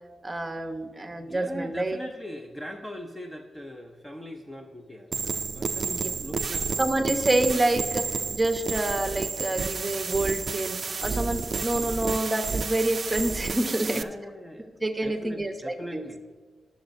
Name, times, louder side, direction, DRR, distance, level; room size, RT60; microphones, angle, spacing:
voice 1, 0.2-2.0 5.8-6.1 6.8-14.1 14.8-16.1, right 2 dB, 15° right, 6 dB, 0.9 m, -27 dB
voice 2, 1.2-6.9 13.8-14.7 15.0-16.2, equal, 10° left, 4 dB, 0.6 m, -41 dB
sound 1, 5.1-14.0, right 4 dB, 45° right, 0.4 m, -31 dB
21.5 x 7.3 x 2.6 m, 1.5 s
cardioid pair, 110°, 0 cm